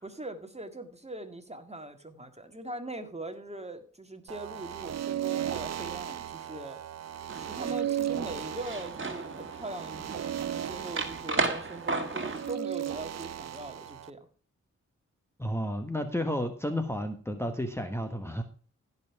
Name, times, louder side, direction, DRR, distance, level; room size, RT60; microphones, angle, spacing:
voice 1, 0.0-6.8 7.3-14.3, right 1 dB, 20° right, 7 dB, 1.8 m, -41 dB
sound 1, 4.3-14.1, right 10 dB, 55° right, 0.5 m, -36 dB
sound 2, 7.3-12.6, right 3 dB, 40° right, 2.0 m, -35 dB
voice 2, 15.4-18.4, equal, 10° left, 5 dB, 1.3 m, -32 dB
16.0 x 5.6 x 4.7 m, 0.40 s
cardioid pair, 50°, 31 cm